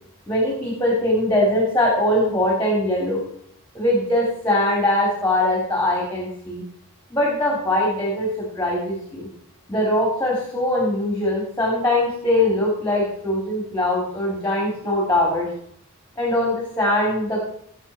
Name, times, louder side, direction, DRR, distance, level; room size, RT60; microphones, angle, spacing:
voice 1, 0.3-3.2 3.7-6.6 7.1-9.3 9.7-15.5 16.2-17.4, left 1 dB, 10° left, -3 dB, 3.5 m, -21 dB
18.5 x 8.0 x 4.5 m, 0.70 s
head